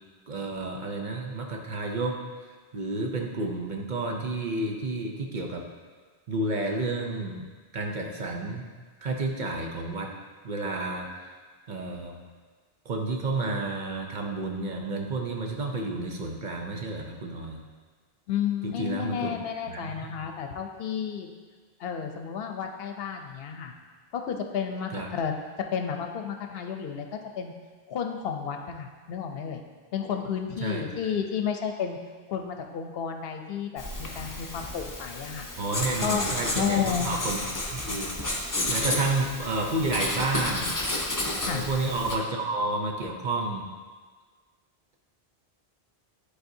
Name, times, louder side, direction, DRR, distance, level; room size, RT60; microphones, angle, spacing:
voice 1, 0.3-2.2 2.7-5.6 6.3-7.5 7.7-8.6 9.0-10.1 10.4-11.1 11.7-12.2 12.9-17.6 18.6-19.3 19.7-20.2 24.9-25.1 30.6-30.8 35.6-37.4 37.7-38.1 38.7-40.8 41.4-43.7, right 2 dB, 55° right, 1 dB, 0.8 m, -30 dB
voice 2, 18.3-21.3 21.8-23.7 24.1-25.3 25.7-27.5 27.9-29.6 29.9-32.0 32.3-35.5 36.0-36.3 36.6-37.1 41.4-41.6, left 7 dB, 75° left, 4 dB, 0.8 m, -31 dB
Writing, 33.8-42.2, left 1 dB, 25° left, 0.6 m, -31 dB
10.5 x 4.0 x 2.7 m, 1.5 s
omnidirectional pair, 1.0 m